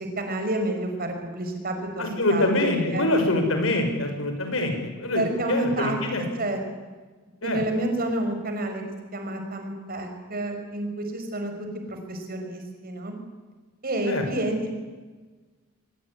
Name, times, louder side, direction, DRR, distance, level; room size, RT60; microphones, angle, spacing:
voice 1, 0.2-2.5 2.9-3.1 5.1-6.0 6.4-6.6 7.4-8.8 9.1-11.5 11.9-13.2 13.8-14.7, right 1 dB, 45° right, 5 dB, 5.8 m, -29 dB
voice 2, 2.0-5.2 5.5-6.2 7.4-7.6 14.0-14.2, left 2 dB, 75° left, 5 dB, 6.3 m, -24 dB
23.5 x 22.5 x 10.0 m, 1.3 s
head